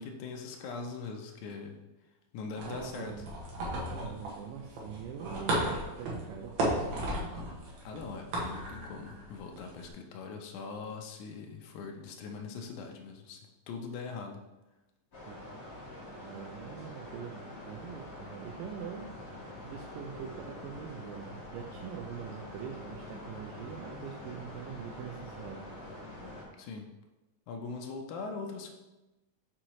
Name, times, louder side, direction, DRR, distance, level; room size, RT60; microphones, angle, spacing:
voice 1, 0.0-1.8 2.3-3.2 7.8-14.4 23.1-23.2 26.6-26.9 27.5-28.7, left 4 dB, 80° left, 3 dB, 1.9 m, -41 dB
sound 1, 2.6-9.9, right 1 dB, 60° right, 2.2 m, -35 dB
voice 2, 2.6-3.3 3.8-7.3 15.3-15.4 16.2-19.2 19.6-25.8, right 8 dB, 80° right, 0 dB, 2.1 m, -43 dB
sound 2, 15.1-26.4, left 1 dB, 40° left, 1.2 m, -45 dB
6.2 x 3.8 x 4.5 m, 1.0 s
omnidirectional pair, 4.0 m